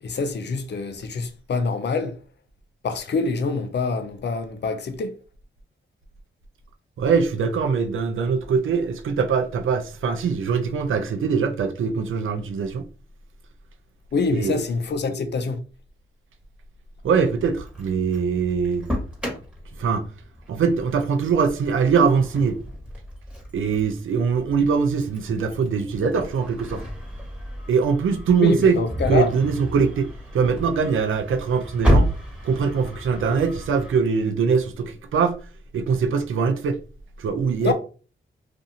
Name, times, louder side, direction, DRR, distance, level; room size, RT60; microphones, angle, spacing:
voice 1, 0.0-2.2 2.8-5.2 14.1-15.6 28.4-29.3 37.6-37.7, left 4 dB, 55° left, 0.6 m, -25 dB
voice 2, 7.0-12.9 14.3-14.6 17.0-18.9 19.8-20.1 20.5-22.6 23.5-26.8 27.7-28.8 29.1-32.2 32.4-35.4 35.7-36.8 37.2-37.7, right 5 dB, 75° right, 0.5 m, -22 dB
Engine starting, 17.0-34.0, equal, 5° right, 1.3 m, -31 dB
2.5 x 2.5 x 2.7 m
cardioid pair, 55°, 21 cm